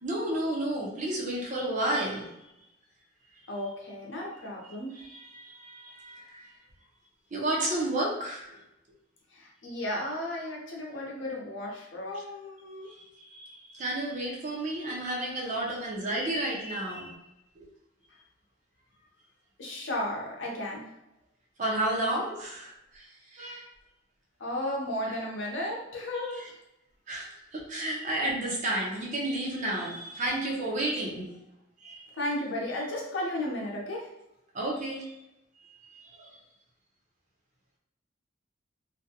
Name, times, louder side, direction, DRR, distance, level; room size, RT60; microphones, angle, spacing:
voice 1, 0.0-2.3 4.6-6.5 7.3-8.6 12.8-17.2 17.6-17.7 21.6-23.7 26.3-26.5 27.1-31.2 31.8-32.1 34.5-35.2 35.6-36.4, right 1 dB, 40° right, -3 dB, 0.6 m, -32 dB
voice 2, 3.5-5.0 9.3-12.9 19.6-20.9 24.4-26.6 32.1-34.1, left 1 dB, 70° left, -2 dB, 0.7 m, -34 dB
2.5 x 2.2 x 2.8 m, 0.89 s
head